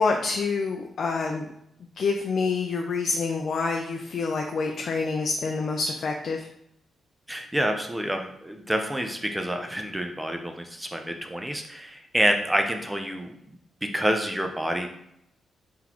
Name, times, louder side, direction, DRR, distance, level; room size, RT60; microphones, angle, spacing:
voice 1, 0.0-1.5 2.0-6.5, left 4 dB, 60° left, 2 dB, 0.5 m, -27 dB
voice 2, 7.3-13.3 13.8-14.9, right 1 dB, 10° right, 4 dB, 0.6 m, -28 dB
3.8 x 3.6 x 3.0 m, 0.77 s
cardioid pair, 100°, 0 cm